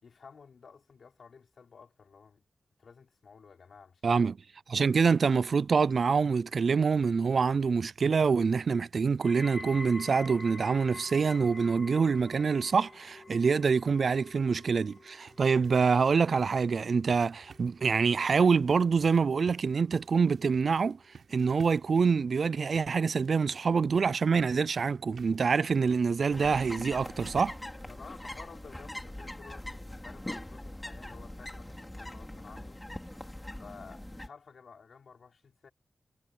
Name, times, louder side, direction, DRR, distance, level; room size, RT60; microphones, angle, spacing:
voice 1, 0.0-2.4 2.8-4.3 27.8-32.8 33.5-35.7, left 5 dB, 70° left, 5.8 m, -53 dB
voice 2, 4.0-4.3 4.7-21.0 21.3-27.6, right 5 dB, 65° right, 0.3 m, -26 dB
sound 1, 9.2-20.3 20.7-21.2 21.9-22.0, left 3 dB, 35° left, 2.9 m, -48 dB
sound 2, 14.8-28.1 28.3-28.5 28.9-29.0 29.3-29.4, right 6 dB, 80° right, 5.5 m, -57 dB
sound 3, 26.3-34.3, left 1 dB, 10° left, 5.2 m, -42 dB
wide cardioid pair, 95°, 0 cm